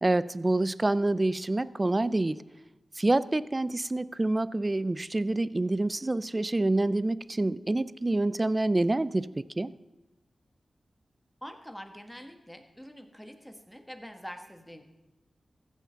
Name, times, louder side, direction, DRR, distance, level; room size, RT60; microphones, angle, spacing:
voice 1, 0.0-2.4 3.0-9.7, right 2 dB, 30° right, 18 dB, 0.4 m, -27 dB
voice 2, 11.4-14.8, equal, 5° left, 7 dB, 1.5 m, -45 dB
14.5 x 7.2 x 5.7 m, 1.0 s
cardioid pair, 55°, 0 cm